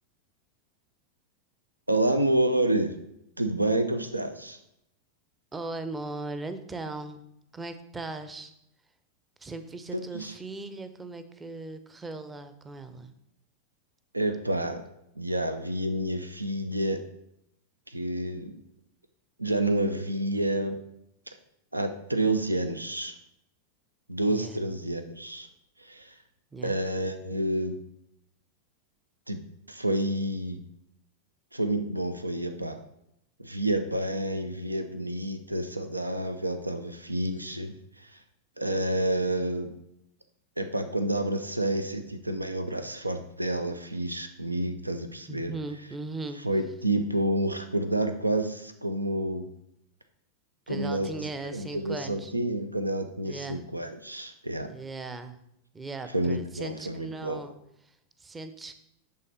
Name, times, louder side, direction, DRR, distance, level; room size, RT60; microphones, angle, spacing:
voice 1, 1.9-2.9 3.4-4.6 9.9-10.3 14.1-14.8 15.2-17.0 17.9-18.6 19.4-20.8 21.7-23.1 24.1-25.5 25.8-26.1 26.6-27.8 29.3-29.4 29.7-30.6 31.5-32.8 33.4-38.1 38.6-39.7 40.6-45.5 46.4-49.5 50.7-54.7 56.1-57.4, right 1 dB, 85° right, 9 dB, 0.5 m, -29 dB
voice 2, 5.5-7.2 7.5-8.5 9.4-13.1 24.3-24.6 26.5-26.8 45.3-46.4 50.7-52.3 53.2-53.6 54.7-55.4 55.7-57.5 57.8-58.8, right 3 dB, 15° right, 10 dB, 0.6 m, -38 dB
10.5 x 3.6 x 4.1 m, 0.79 s
figure-of-eight pair, 90°, 0 cm